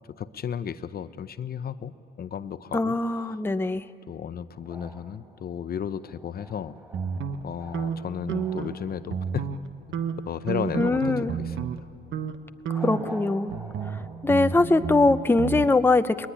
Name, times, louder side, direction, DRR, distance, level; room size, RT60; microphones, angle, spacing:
voice 1, 0.2-3.4 4.1-6.8 7.4-9.5 10.3-11.9, left 8 dB, 50° left, 13 dB, 0.7 m, -34 dB
voice 2, 2.7-3.8 10.8-11.3 12.7-13.6 14.2-16.3, left 3 dB, 10° left, 10 dB, 0.7 m, -22 dB
sound 1, 4.5-10.3 12.6-14.3, right 1 dB, 10° right, 5.2 m, -47 dB
sound 2, 6.9-8.8 9.1-9.7 9.9-11.8 12.1-12.4 12.6-15.7, right 7 dB, 70° right, 1.2 m, -31 dB
20.5 x 20.0 x 9.9 m, 2.4 s
cardioid pair, 90°, 20 cm